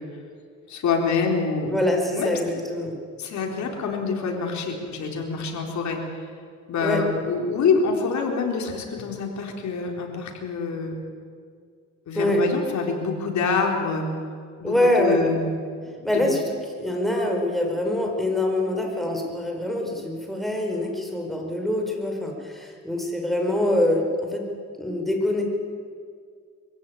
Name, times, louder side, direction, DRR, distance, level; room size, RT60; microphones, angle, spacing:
voice 1, 0.7-1.8 2.1-2.3 3.2-6.0 6.7-11.0 12.1-14.1 14.6-15.4 15.8-16.2, left 5 dB, 70° left, 2 dB, 4.1 m, -26 dB
voice 2, 1.7-3.0 6.8-7.0 12.1-12.4 14.6-15.3 16.0-16.4 16.8-24.4 24.8-25.4, left 1 dB, ahead, 1 dB, 5.1 m, -24 dB
23.0 x 15.5 x 9.6 m, 2.1 s
cardioid pair, 90°, 30 cm